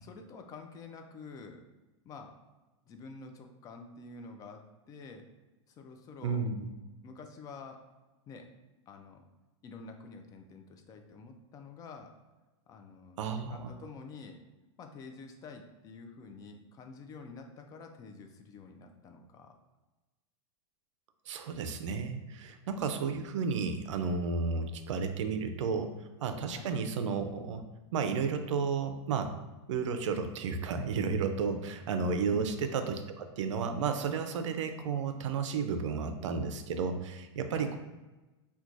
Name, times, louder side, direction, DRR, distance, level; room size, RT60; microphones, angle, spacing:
voice 1, 0.0-1.6 2.0-2.4 2.8-5.2 5.7-6.5 7.0-7.8 8.3-8.5 8.9-9.2 9.6-12.1 12.7-14.4 14.8-19.5 26.5-26.7 32.3-32.6 37.6-37.8, left 4 dB, 25° left, 5 dB, 0.3 m, -48 dB
voice 2, 6.2-6.7 13.2-13.7 21.3-27.6 27.9-29.3 29.7-37.8, right 5 dB, 85° right, 8 dB, 0.4 m, -32 dB
4.4 x 2.2 x 2.5 m, 1.1 s
supercardioid pair, 135°, 15 cm